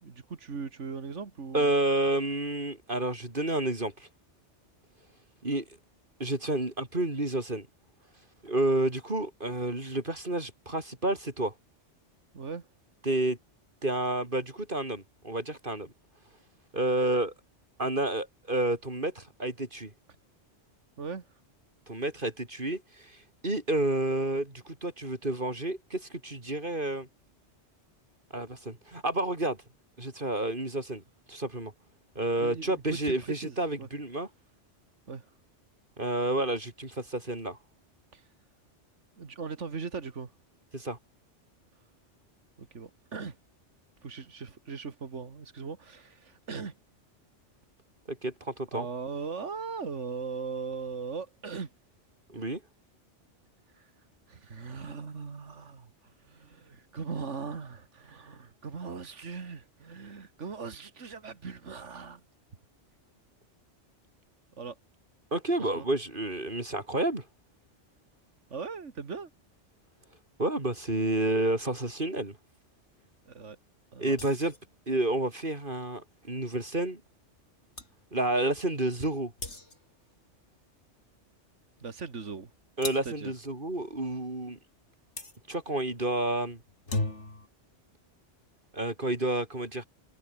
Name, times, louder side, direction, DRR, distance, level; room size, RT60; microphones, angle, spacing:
voice 1, 0.0-1.7 12.3-12.7 21.0-21.3 32.4-33.9 35.1-35.3 38.1-38.3 39.2-40.3 42.6-43.4 44.0-46.8 48.7-51.7 52.3-52.4 53.7-53.9 54.3-62.2 64.6-64.8 65.6-65.9 68.5-69.3 73.3-73.6 73.9-74.1 81.8-82.5 83.0-83.3, right 5 dB, 85° right, 2.2 m, -39 dB
voice 2, 1.5-4.1 5.4-5.6 6.2-7.7 8.4-11.5 13.1-13.4 13.8-15.9 16.7-17.3 17.8-19.9 21.9-23.1 23.4-27.1 28.3-29.6 30.0-31.0 31.3-31.7 32.2-34.3 36.0-37.6 40.7-41.0 48.1-48.9 52.3-52.6 65.3-67.2 70.4-72.4 74.0-74.5 74.9-77.0 78.1-79.3 82.8-84.6 85.5-86.6 88.7-89.8, right 1 dB, 45° right, 4.0 m, -30 dB
sound 1, 74.1-74.7 77.4-77.5 77.8-78.0 79.4-80.0 82.8-83.2 85.2-85.4 86.7-87.5, left 2 dB, 75° left, 4.9 m, -36 dB
omnidirectional pair, 1.2 m